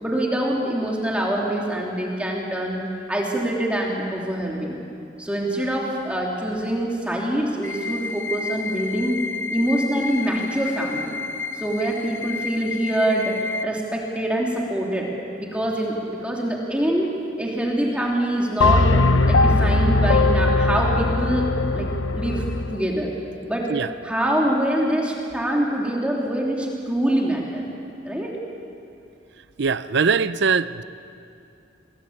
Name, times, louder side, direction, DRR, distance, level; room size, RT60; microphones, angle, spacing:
voice 1, 0.0-2.8 3.1-4.8 5.2-9.2 9.5-11.1 11.6-15.1 15.4-21.5 21.7-23.1 23.5-23.8 24.0-27.6 28.0-28.4, right 1 dB, 5° right, 2.9 m, -25 dB
sound 1, 7.6-13.6, left 4 dB, 10° left, 0.8 m, -31 dB
sound 2, 18.6-22.8, left 2 dB, 85° left, 0.9 m, -19 dB
voice 2, 29.6-30.8, right 5 dB, 60° right, 0.6 m, -21 dB
29.5 x 21.5 x 8.6 m
head